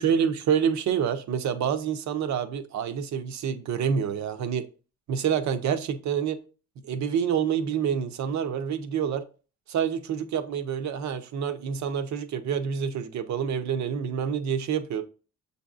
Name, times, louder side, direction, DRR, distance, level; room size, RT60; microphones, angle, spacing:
voice 1, 0.0-4.6 5.1-6.4 6.8-9.2 9.7-15.0, right 8 dB, 65° right, 0.7 m, -27 dB
6.7 x 2.7 x 2.4 m
cardioid pair, 90°, 30 cm